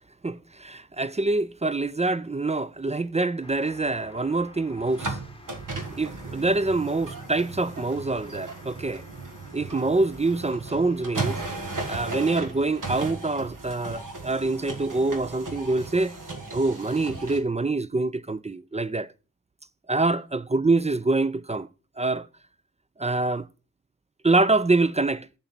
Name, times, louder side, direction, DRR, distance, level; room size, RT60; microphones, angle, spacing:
voice 1, 0.2-5.2 5.9-9.0 9.5-11.4 11.9-16.1 16.5-19.1 19.9-21.7 22.0-22.3 23.0-23.5 24.2-25.3, right 3 dB, 20° right, 0.4 m, -25 dB
sound 1, 3.4-12.9, left 2 dB, 15° left, 1.1 m, -51 dB
sound 2, 4.9-17.4, right 3 dB, 70° right, 1.6 m, -36 dB
7.0 x 4.0 x 5.8 m
cardioid pair, 40°, 33 cm